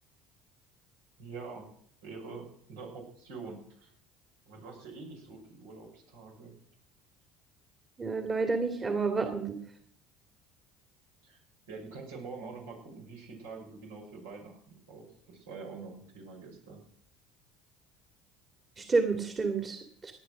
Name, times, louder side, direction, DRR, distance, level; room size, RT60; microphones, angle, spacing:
voice 1, 1.2-1.7 2.0-3.9 4.5-6.5 11.2-11.4 11.7-16.8, right 4 dB, 85° right, 0 dB, 6.0 m, -45 dB
voice 2, 8.0-9.6 18.8-20.1, right 4 dB, 30° right, 5 dB, 2.2 m, -30 dB
17.5 x 10.0 x 6.2 m, 0.66 s
hypercardioid pair, 70°, 0 cm